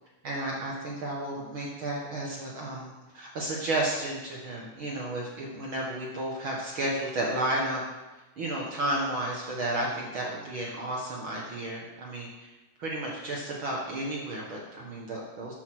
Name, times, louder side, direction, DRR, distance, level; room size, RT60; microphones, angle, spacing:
voice 1, 0.2-7.8 8.4-12.5 12.8-15.5, right 1 dB, 70° right, -3 dB, 1.2 m, -32 dB
12.5 x 7.0 x 6.2 m, 1.1 s
omnidirectional pair, 4.8 m